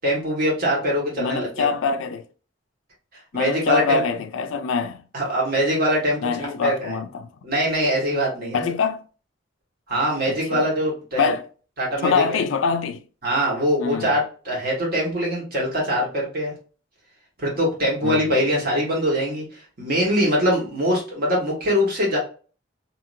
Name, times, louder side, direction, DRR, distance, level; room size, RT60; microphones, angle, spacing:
voice 1, 0.0-1.7 3.3-4.0 5.1-7.0 7.4-8.6 9.9-11.3 11.8-12.4 13.2-16.5 17.4-22.2, equal, 50° right, 1.4 m, -23 dB
voice 2, 1.2-2.2 3.3-5.0 6.2-7.3 8.5-9.0 10.3-10.6 11.2-11.4 12.0-13.0 13.8-14.1 18.0-18.4, left 5 dB, 90° left, 0.4 m, -24 dB
2.8 x 2.7 x 2.5 m
head